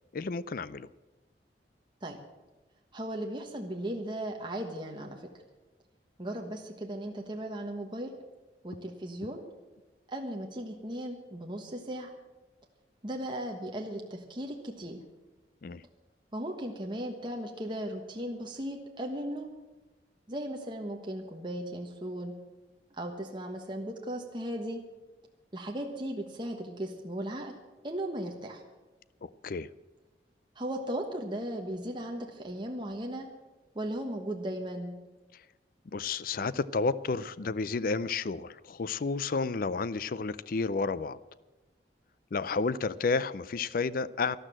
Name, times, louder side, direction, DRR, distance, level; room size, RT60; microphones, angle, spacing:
voice 1, 0.1-0.9 15.6-15.8 29.2-29.7 35.9-41.2 42.3-44.4, left 4 dB, 50° left, 0.5 m, -31 dB
voice 2, 2.9-5.3 6.2-8.1 8.6-9.4 10.1-12.1 13.0-15.0 16.3-19.5 20.3-22.3 23.0-24.8 25.5-27.5 27.8-28.6 30.6-33.3 33.7-35.0, right 1 dB, 25° right, 1.3 m, -36 dB
12.5 x 12.0 x 7.6 m
head